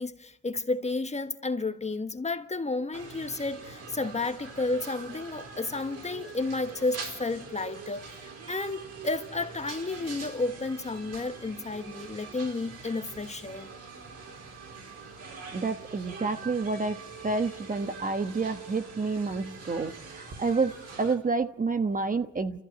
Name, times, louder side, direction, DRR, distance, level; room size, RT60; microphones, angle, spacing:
voice 1, 0.0-13.7, left 3 dB, 20° left, 1.3 m, -32 dB
sound 1, 2.9-21.1, right 4 dB, 55° right, 4.8 m, -44 dB
voice 2, 15.5-22.6, right 4 dB, 25° right, 1.2 m, -29 dB
29.0 x 14.5 x 7.9 m
cardioid pair, 90°, 30 cm